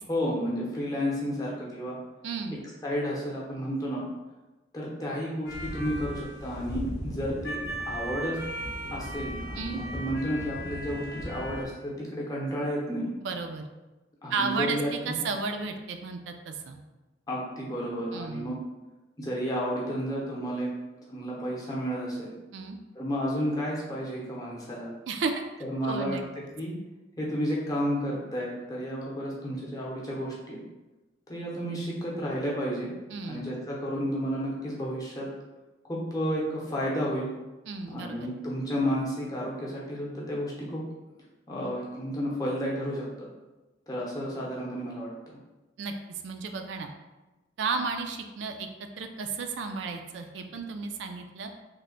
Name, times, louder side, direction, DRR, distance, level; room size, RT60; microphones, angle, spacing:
voice 1, 0.1-2.0 2.8-4.0 4.7-8.4 8.9-13.1 14.2-15.1 17.3-18.6 19.2-20.7 21.1-22.3 23.0-24.9 25.7-26.2 26.6-26.7 27.2-30.6 31.3-32.9 33.3-35.3 35.8-37.3 37.9-40.8 41.5-43.3 43.9-45.1, equal, 20° left, -5 dB, 0.6 m, -31 dB
voice 2, 2.2-2.6 9.6-9.8 13.2-13.6 14.3-16.8 18.1-18.6 22.5-22.8 25.1-25.3 25.8-26.2 33.1-33.5 37.7-38.3 45.8-46.9 47.6-48.7 49.0-51.5, right 4 dB, 75° right, 6 dB, 0.3 m, -33 dB
sound 1, 5.4-11.6, equal, 70° left, 0.6 m, -36 dB
3.2 x 2.1 x 3.8 m, 1.1 s
head